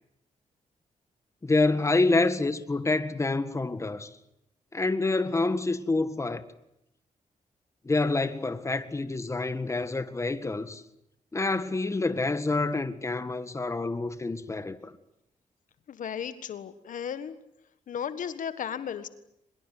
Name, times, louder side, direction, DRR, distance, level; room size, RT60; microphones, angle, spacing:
voice 1, 1.4-4.1 4.7-6.4 7.8-10.8 11.3-14.9, left 3 dB, 20° left, 1.8 m, -27 dB
voice 2, 15.9-17.3 17.9-19.1, left 8 dB, 70° left, 1.6 m, -35 dB
23.5 x 21.5 x 9.4 m
cardioid pair, 90°, 14 cm